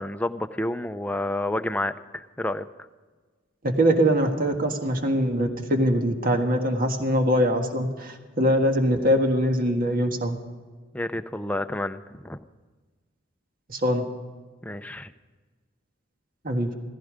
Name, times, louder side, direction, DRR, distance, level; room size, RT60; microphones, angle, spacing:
voice 1, 0.0-2.6 10.9-12.4 14.6-15.1, left 1 dB, 5° left, 9 dB, 0.5 m, -30 dB
voice 2, 3.6-10.4 13.7-14.0 16.4-16.7, equal, 50° right, 4 dB, 1.6 m, -23 dB
17.0 x 15.0 x 5.0 m, 1.4 s
head